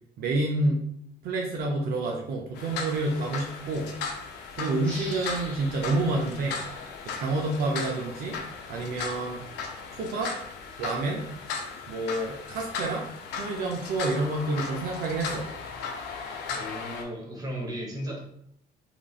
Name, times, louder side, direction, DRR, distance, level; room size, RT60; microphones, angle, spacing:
voice 1, 0.2-0.8 1.2-3.9 4.6-6.6 7.1-8.4 8.7-9.4 9.9-10.3 10.8-11.2 11.9-13.0 13.4-15.5, right 2 dB, 65° right, 0 dB, 0.5 m, -28 dB
sound 1, 2.6-17.0, left 5 dB, 85° left, 0.5 m, -37 dB
sound 2, 4.8-8.1, left 1 dB, 5° left, 1.3 m, -45 dB
voice 2, 16.5-18.2, equal, 20° right, -3 dB, 1.0 m, -35 dB
3.0 x 2.5 x 2.3 m, 0.72 s
cardioid pair, 110°, 17 cm